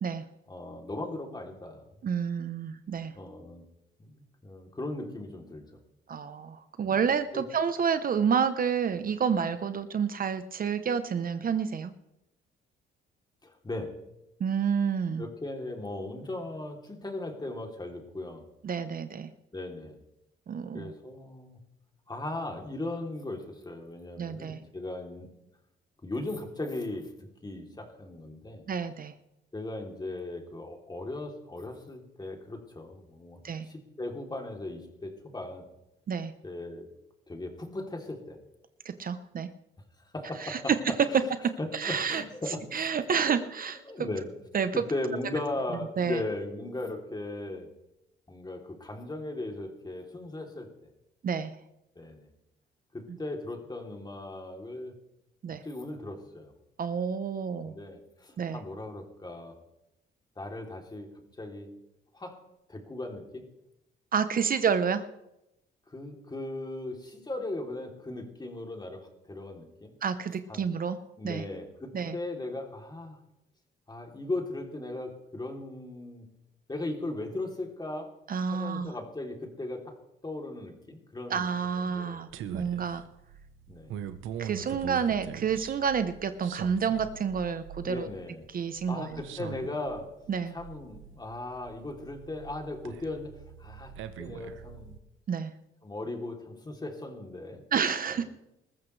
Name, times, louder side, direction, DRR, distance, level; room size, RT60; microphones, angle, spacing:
voice 1, 0.5-1.9 3.1-3.7 4.0-5.7 6.8-7.0 7.3-7.4 13.4-13.9 15.2-18.4 19.5-20.0 20.7-21.6 22.1-25.3 26.0-28.6 29.5-35.7 36.4-36.9 37.3-38.4 40.1-41.3 41.6-42.9 43.3-43.4 43.9-44.3 44.7-47.7 48.3-50.7 51.9-52.3 52.9-54.9 55.6-56.5 57.6-59.6 60.4-61.1 61.4-61.7 62.1-62.3 62.7-63.4 65.9-69.0 69.3-69.9 70.5-70.6 71.2-73.2 73.9-76.2 76.7-78.1 78.5-79.9 80.2-82.2 83.7-84.0 87.8-88.4 88.9-90.1 90.5-93.3 93.6-95.0 95.8-97.6, left 2 dB, 20° left, 2 dB, 3.1 m, -38 dB
voice 2, 2.0-3.1 6.1-11.9 14.4-15.2 18.6-19.3 20.5-20.9 24.2-24.6 28.7-29.1 33.4-33.7 36.1-36.3 38.8-39.5 40.4-40.8 41.7-42.2 42.7-43.8 44.5-44.7 46.0-46.2 51.2-51.5 53.1-53.2 55.4-55.6 56.8-57.8 58.4-58.6 64.1-65.0 70.0-71.0 71.2-71.4 71.9-72.2 78.3-78.9 81.3-83.0 84.4-88.1 88.5-89.2 90.3-90.6 95.3-95.5 97.7-98.2, right 6 dB, 45° right, 11 dB, 0.9 m, -29 dB
sound 1, 82.3-95.0, right 9 dB, 85° right, 1.0 m, -43 dB
20.5 x 14.0 x 3.3 m, 0.88 s
cardioid pair, 90°, 20 cm